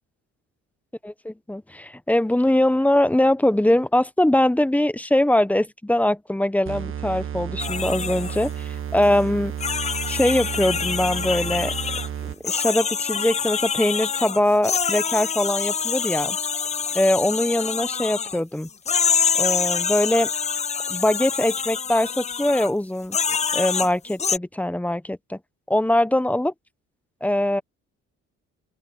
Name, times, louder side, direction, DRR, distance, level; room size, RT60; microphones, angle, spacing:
voice 1, 1.0-9.5 10.1-11.7 12.4-16.4 16.9-18.7 19.4-20.3 20.9-23.2 23.5-25.4 25.7-26.5 27.2-27.6, left 1 dB, 5° left, 0.9 m, -22 dB
sound 1, 6.6-12.6, right 8 dB, 45° right, 1.8 m, -32 dB
sound 2, 7.6-8.5 9.0-9.1 9.6-12.1 12.4-18.4 18.9-22.7 23.1-24.4, left 6 dB, 25° left, 0.4 m, -26 dB
open air
cardioid pair, 90°, 30 cm